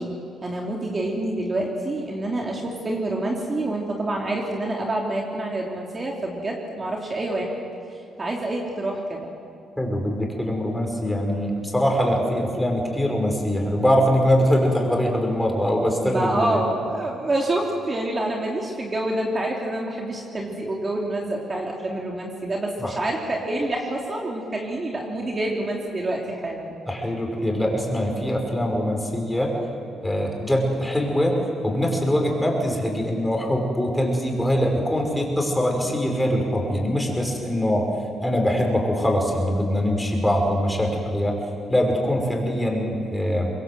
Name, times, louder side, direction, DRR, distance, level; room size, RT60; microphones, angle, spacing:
voice 1, 0.0-7.5 8.2-9.3 16.0-26.8, right 1 dB, 30° right, -1 dB, 3.2 m, -27 dB
voice 2, 9.8-16.6 22.8-22.9 26.9-29.5 30.0-31.4 31.6-37.8 38.2-41.4 41.7-43.5, equal, 5° left, 1 dB, 5.7 m, -23 dB
25.0 x 22.0 x 8.0 m, 2.6 s
cardioid pair, 90°, 0 cm